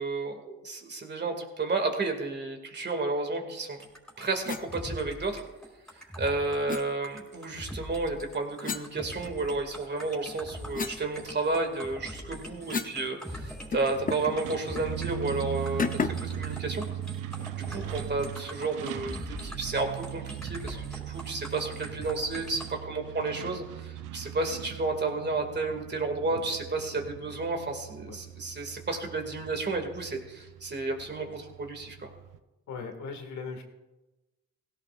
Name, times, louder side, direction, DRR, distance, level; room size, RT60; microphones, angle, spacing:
voice 1, 0.0-3.8 4.2-5.4 5.9-16.8 17.6-32.1, right 3 dB, 35° right, 4 dB, 2.4 m, -32 dB
sound 1, 3.8-22.7, equal, ahead, 4.8 m, -42 dB
sound 2, 4.4-4.7 6.7-6.9 8.6-9.7 10.1-13.0 13.3-13.4 13.7-14.4 14.7-14.9 15.8-16.3, left 5 dB, 30° left, 0.8 m, -34 dB
Truck, 13.9-32.4, right 12 dB, 85° right, 0.7 m, -40 dB
voice 2, 32.7-33.6, left 5 dB, 70° left, 4 dB, 2.1 m, -39 dB
17.0 x 17.0 x 2.5 m, 1.1 s
cardioid pair, 90°, 30 cm